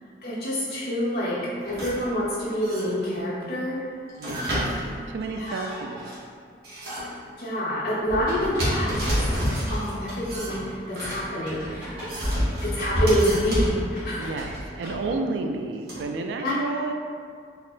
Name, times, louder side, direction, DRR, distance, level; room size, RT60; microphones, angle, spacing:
voice 1, 0.2-1.4 1.6-3.8 5.4-5.6 7.0-7.1 7.4-11.9 12.6-14.3 16.4-16.5, equal, 55° left, -8 dB, 1.0 m, -27 dB
sound 1, 1.6-2.1 2.6-3.2 4.1-6.2 6.6-7.2 8.3-9.9 10.2-11.2 11.8-13.8 15.1-15.2 15.9-16.0, equal, 55° right, 1.0 m, -28 dB
voice 2, 4.2-4.5 5.1-6.1 12.4-12.5 14.2-16.9, right 3 dB, 80° right, 4 dB, 0.3 m, -31 dB
Typing, 8.1-15.1, equal, 5° right, 1.5 m, -38 dB
4.1 x 2.8 x 2.5 m, 2.2 s
head